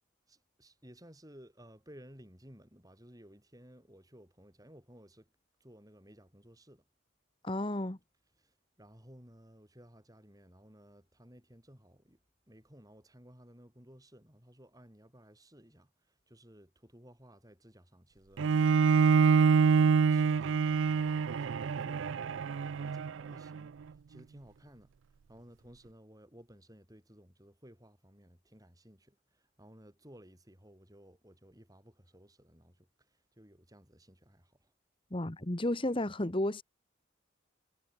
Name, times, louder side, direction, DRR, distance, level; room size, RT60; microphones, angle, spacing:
voice 1, 0.3-5.3 5.6-6.9 8.4-12.2 12.5-23.8 24.1-24.9 25.3-34.7, equal, 20° right, 7.6 m, -57 dB
voice 2, 7.4-8.0 35.1-36.6, left 1 dB, 25° left, 1.3 m, -32 dB
Bowed string instrument, 18.4-23.6, right 5 dB, 75° right, 0.4 m, -26 dB
head